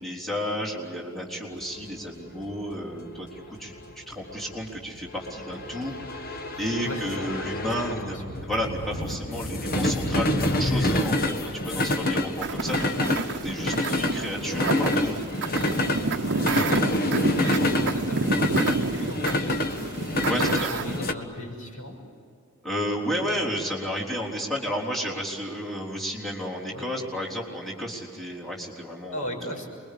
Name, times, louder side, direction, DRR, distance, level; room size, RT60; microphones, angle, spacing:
voice 1, 0.0-15.1 20.2-20.7 22.6-29.3, equal, ahead, -4 dB, 3.8 m, -32 dB
sound 1, 1.6-21.1, left 1 dB, 45° left, 1.5 m, -27 dB
voice 2, 6.8-7.3 7.7-8.2 13.7-14.1 16.4-21.9 26.7-27.1 29.1-29.7, equal, 85° left, 1 dB, 6.9 m, -38 dB
sound 2, 12.4-21.0, right 3 dB, 55° right, 0.9 m, -29 dB
28.0 x 22.5 x 8.6 m, 2.3 s
head